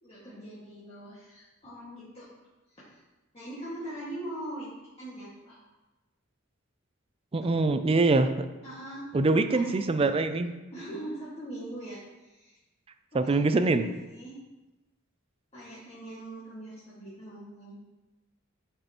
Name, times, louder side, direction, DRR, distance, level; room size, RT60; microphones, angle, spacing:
voice 1, 0.0-2.3 2.7-3.0 3.3-4.7 5.0-5.6 8.6-9.1 9.5-9.8 10.7-12.6 13.2-13.4 13.7-14.4 15.5-17.8, right 1 dB, 30° left, -10 dB, 1.8 m, -41 dB
voice 2, 7.3-8.5 9.1-10.5 13.1-13.9, right 3 dB, 25° right, 10 dB, 0.4 m, -24 dB
10.5 x 5.5 x 3.0 m, 1.1 s
head